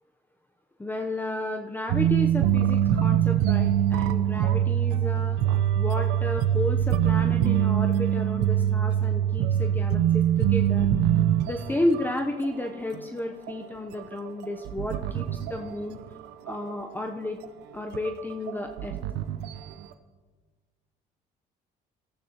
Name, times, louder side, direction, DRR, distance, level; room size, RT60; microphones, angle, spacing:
voice 1, 0.8-5.4 5.8-10.9 11.4-16.0 16.5-17.4 17.7-19.0, left 1 dB, 10° left, 4 dB, 0.8 m, -32 dB
sound 1, 1.9-12.1 12.4-12.6 12.9-13.0 13.5-16.1 16.5-17.0 17.4-17.5 17.9-19.8, right 10 dB, 85° right, 0.8 m, -24 dB
24.0 x 13.5 x 3.0 m, 1.5 s
cardioid pair, 110°, 17 cm